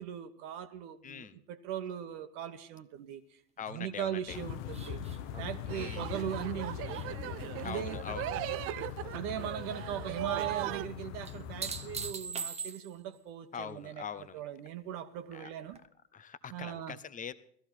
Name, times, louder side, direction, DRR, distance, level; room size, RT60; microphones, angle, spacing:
voice 1, 0.0-3.2 3.7-5.0 5.4-7.0 7.5-8.0 9.1-14.0 14.3-15.8 16.5-17.0, right 10 dB, 50° right, 1.3 m, -39 dB
voice 2, 1.0-1.4 3.6-4.4 5.7-6.1 7.6-8.3 13.5-14.4 15.3-15.5 16.1-17.3, left 7 dB, 15° left, 0.9 m, -42 dB
sound 1, 4.3-12.1, left 10 dB, 50° left, 1.1 m, -41 dB
sound 2, 4.7-8.2 8.6-9.2 11.3-13.1 15.7-15.8, right 5 dB, 15° right, 0.9 m, -43 dB
sound 3, 5.7-10.9, right 14 dB, 30° right, 0.6 m, -38 dB
17.0 x 14.0 x 4.4 m
hypercardioid pair, 95°, 49 cm